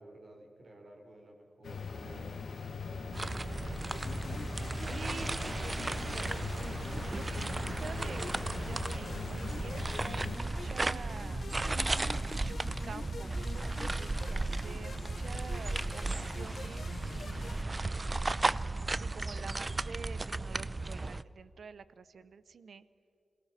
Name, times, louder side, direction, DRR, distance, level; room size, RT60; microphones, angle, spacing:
voice 1, 0.0-2.3 2.9-4.1, right 1 dB, 55° right, 2 dB, 3.7 m, -53 dB
sound 1, 1.6-10.4, left 5 dB, 85° left, 1.5 m, -41 dB
sound 2, 3.1-21.2, right 2 dB, 30° right, 0.4 m, -35 dB
sound 3, 3.9-17.6, left 5 dB, 65° left, 0.5 m, -46 dB
voice 2, 4.9-6.5 7.1-11.5 12.3-17.7 18.5-18.6 19.0-22.8, right 5 dB, 80° right, 15 dB, 0.7 m, -48 dB
27.0 x 18.0 x 5.7 m, 2.7 s
wide cardioid pair, 120°, 0 cm